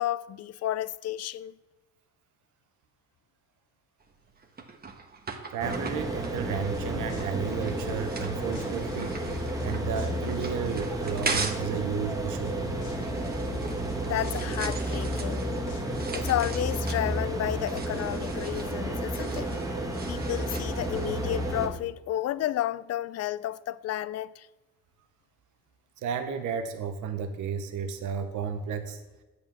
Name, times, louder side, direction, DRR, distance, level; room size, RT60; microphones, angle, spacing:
voice 1, 0.0-1.5 14.1-15.4 16.1-19.5 20.1-24.5, left 13 dB, 55° left, 0.4 m, -31 dB
sound 1, 4.0-11.7 12.1-21.1, right 4 dB, 30° right, 1.2 m, -40 dB
voice 2, 5.5-9.2 9.6-12.8 26.0-29.0, right 7 dB, 75° right, 0.9 m, -33 dB
sound 2, 5.6-21.7, right 1 dB, 10° right, 1.5 m, -32 dB
sound 3, 6.7-8.2 8.5-9.7 10.0-11.1 11.4-13.9 14.2-16.2, left 3 dB, 85° left, 1.5 m, -44 dB
8.5 x 4.9 x 7.2 m
cardioid pair, 90°, 30 cm